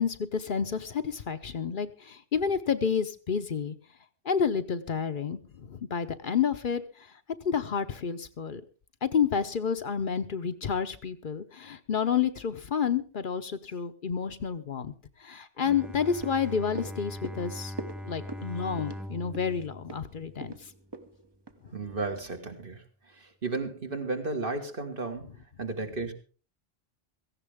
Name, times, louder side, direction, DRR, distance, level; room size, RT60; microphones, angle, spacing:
voice 1, 0.0-3.7 4.2-6.8 7.4-8.6 9.0-14.9 15.2-17.7 18.1-20.5, left 7 dB, 55° left, 10 dB, 0.9 m, -30 dB
Bowed string instrument, 15.6-20.9, equal, ahead, 0.5 m, -41 dB
sound 1, 15.7-22.2 22.5-22.6, right 2 dB, 25° right, 0.8 m, -43 dB
voice 2, 21.7-22.8 23.4-25.3 25.6-26.1, right 3 dB, 60° right, 4 dB, 2.0 m, -33 dB
17.0 x 15.0 x 3.6 m, 0.37 s
omnidirectional pair, 1.0 m